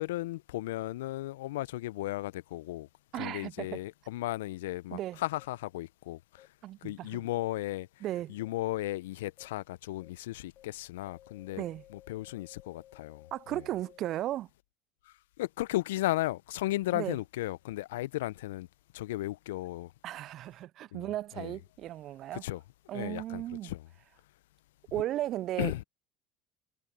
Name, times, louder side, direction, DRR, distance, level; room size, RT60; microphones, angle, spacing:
voice 1, 0.0-2.9 3.1-6.5 6.8-7.9 8.3-11.6 11.9-13.6 15.4-18.7 18.9-19.9 20.9-21.1 21.4-21.6 22.3-22.6 22.9-23.9 25.6-25.8, left 16 dB, 75° left, 0.8 m, -35 dB
voice 2, 3.1-3.7 4.9-5.2 6.6-7.2 8.0-8.4 11.6-11.8 13.3-14.5 16.9-17.2 20.0-22.4 22.9-23.7 24.9-25.8, right 13 dB, 55° right, 0.5 m, -35 dB
sound 1, 5.4-5.5 6.4-6.5 7.4-7.5 8.4-8.5 9.4-9.5 10.0-10.1 10.6-10.7 11.1-14.2, left 12 dB, 50° left, 3.2 m, -56 dB
hypercardioid pair, 65°, 0 cm